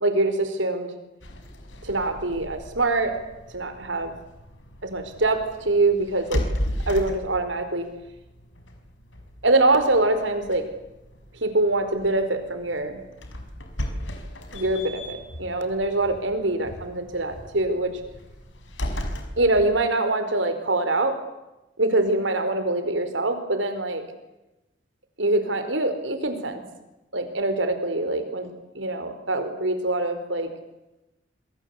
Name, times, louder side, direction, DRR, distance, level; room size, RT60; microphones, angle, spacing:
voice 1, 0.0-0.9 1.8-3.1 3.5-4.1 4.8-6.5 6.9-7.9 9.4-10.7 11.4-13.0 14.5-17.9 19.4-21.2 21.8-24.0 25.2-26.6 27.1-30.5, right 2 dB, 85° right, 8 dB, 4.7 m, -24 dB
sound 1, 1.2-19.7, equal, 85° left, 5.6 m, -36 dB
27.0 x 22.5 x 8.5 m, 0.97 s
head